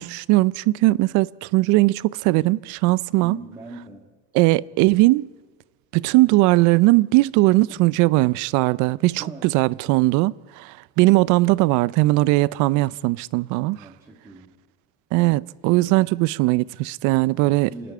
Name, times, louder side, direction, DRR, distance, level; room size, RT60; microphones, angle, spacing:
voice 1, 0.0-3.4 4.3-5.3 5.9-13.8 15.1-17.7, right 20 dB, 70° right, 0.6 m, -19 dB
voice 2, 3.2-4.1 7.7-7.9 9.2-9.9 13.7-14.6 17.4-17.9, right 2 dB, 10° right, 2.2 m, -41 dB
27.5 x 10.5 x 9.6 m
cardioid pair, 165°, 31 cm